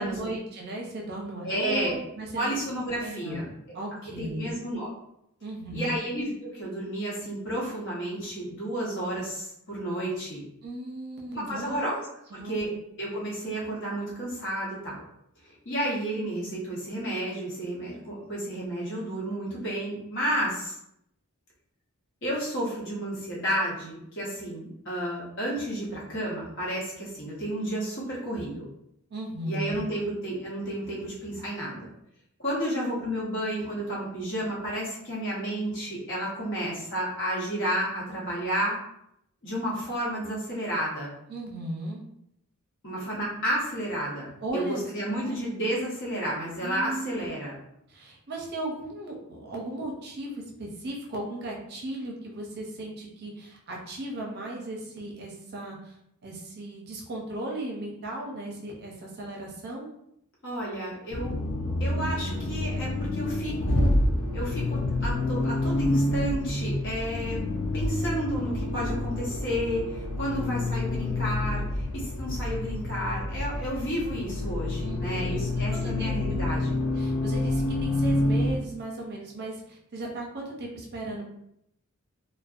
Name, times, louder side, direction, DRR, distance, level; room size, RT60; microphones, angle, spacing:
voice 1, 0.0-2.5 3.0-4.6 5.4-6.0 10.6-11.8 12.3-12.7 29.1-29.8 41.3-42.0 44.4-44.8 45.1-45.4 46.6-47.3 47.9-56.0 56.2-59.9 74.8-75.5 75.8-76.1 76.9-81.3, right 1 dB, 50° right, -1 dB, 0.6 m, -36 dB
voice 2, 1.4-2.0 2.3-3.8 4.2-4.9 5.7-10.4 11.3-12.0 12.3-12.7 13.0-15.0 15.5-20.8 22.2-28.7 29.4-31.9 32.4-38.8 39.4-41.1 42.8-47.5 60.4-61.4 61.8-63.9 64.3-67.4 67.7-76.8, right 1 dB, 55° left, -5 dB, 0.9 m, -31 dB
Accelerating revving vroom, 61.1-78.6, left 1 dB, 75° left, 0.4 m, -28 dB
2.6 x 2.0 x 2.4 m, 0.78 s
head